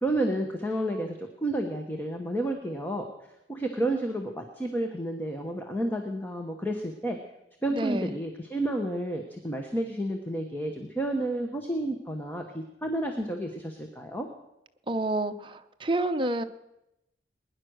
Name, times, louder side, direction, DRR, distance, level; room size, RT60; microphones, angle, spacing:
voice 1, 0.0-3.0 3.5-7.2 7.6-14.3, right 1 dB, 10° left, 3 dB, 1.2 m, -31 dB
voice 2, 7.7-8.2 14.9-16.4, right 2 dB, 25° right, 7 dB, 0.7 m, -29 dB
20.5 x 10.5 x 6.4 m, 0.87 s
head